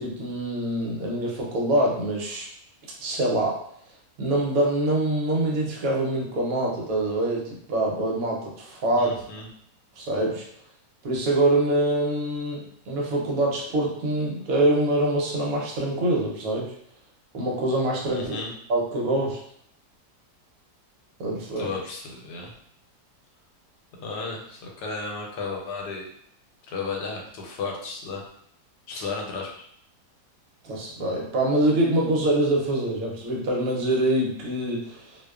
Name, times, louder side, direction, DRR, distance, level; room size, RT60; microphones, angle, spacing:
voice 1, 0.0-2.5 3.0-3.6 4.2-9.2 10.0-10.4 11.0-16.7 17.3-18.3 18.7-19.4 21.2-21.7 30.6-35.2, right 1 dB, 65° right, -3 dB, 1.0 m, -25 dB
voice 2, 9.0-9.5 18.1-18.5 21.6-22.5 23.9-26.1 26.7-28.2 28.9-29.7, left 4 dB, 80° left, 0 dB, 1.2 m, -34 dB
2.6 x 2.1 x 2.3 m, 0.67 s
omnidirectional pair, 1.8 m